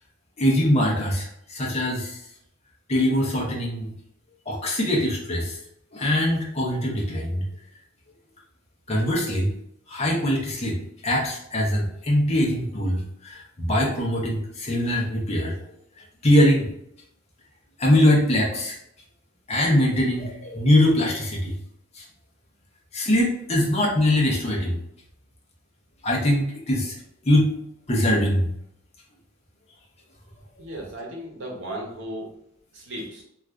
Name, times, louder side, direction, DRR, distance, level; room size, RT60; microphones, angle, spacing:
voice 1, 0.4-2.2 2.9-3.9 4.5-5.6 5.9-7.4 8.9-9.5 9.9-15.5 16.2-16.7 17.8-18.8 19.5-21.5 21.9-22.0 22.9-24.8 26.0-26.9 27.3-27.5 27.9-28.5, left 1 dB, 30° left, -2 dB, 0.7 m, -22 dB
voice 2, 30.6-32.3 32.7-33.2, right 1 dB, 60° right, -1 dB, 0.9 m, -35 dB
2.5 x 2.4 x 3.3 m, 0.74 s
head